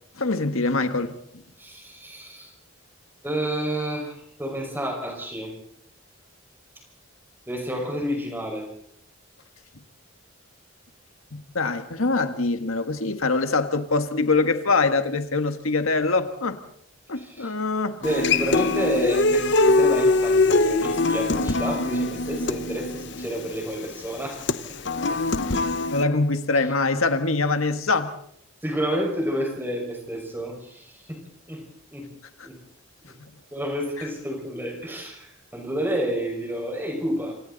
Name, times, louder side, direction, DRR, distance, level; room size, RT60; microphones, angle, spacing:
voice 1, 0.2-1.4 11.3-16.6 17.1-18.0 25.5-25.6 25.9-28.1, left 3 dB, 85° left, 1.6 m, -24 dB
voice 2, 1.6-2.5 3.2-5.5 7.5-8.7 17.2-17.5 18.0-24.4 24.7-24.8 25.1-25.2 25.5-25.6 28.6-31.2 31.5-31.7 31.9-32.1 32.4-32.6 33.5-37.3, equal, 10° right, 5.5 m, -30 dB
Human voice / Acoustic guitar, 18.0-26.0, left 2 dB, 60° left, 1.1 m, -22 dB
28.0 x 26.5 x 4.1 m
head